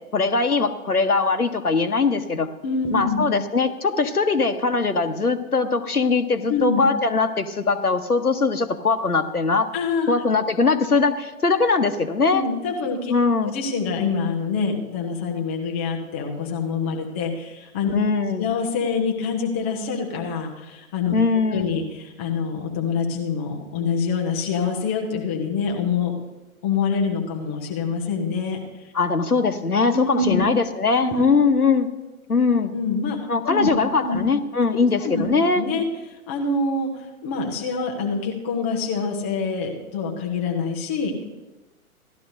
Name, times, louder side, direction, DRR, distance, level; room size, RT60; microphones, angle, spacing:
voice 1, 0.1-2.5 2.9-9.7 10.1-12.4 13.1-13.5 17.9-18.4 21.1-21.7 28.9-31.9 32.3-32.7 33.3-35.6, left 4 dB, 85° left, 9 dB, 1.1 m, -21 dB
voice 2, 2.6-3.3 6.5-6.8 9.7-10.2 12.3-13.1 13.4-17.9 18.4-21.2 21.5-26.1 26.6-28.9 29.9-30.4 31.0-31.1 32.7-33.7 34.0-34.2 34.7-35.3 35.5-35.9 36.3-41.2, left 5 dB, 10° left, 0 dB, 0.4 m, -26 dB
17.0 x 12.5 x 2.6 m, 1.1 s
figure-of-eight pair, 120°, 44 cm